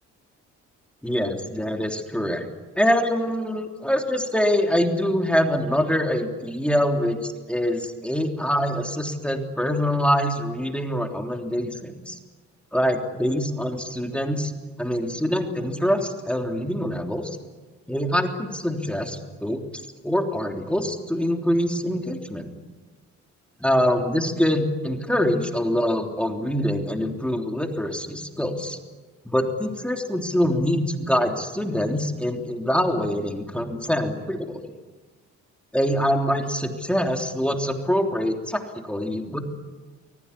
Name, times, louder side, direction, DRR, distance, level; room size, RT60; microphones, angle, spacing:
voice 1, 1.0-2.5 2.8-12.2 12.7-14.5 14.8-17.4 17.9-19.6 20.0-22.5 23.6-28.8 29.2-34.7 35.7-39.4, equal, 5° left, 3 dB, 3.3 m, -24 dB
24.5 x 21.0 x 10.0 m, 1.3 s
cardioid pair, 90°, 30 cm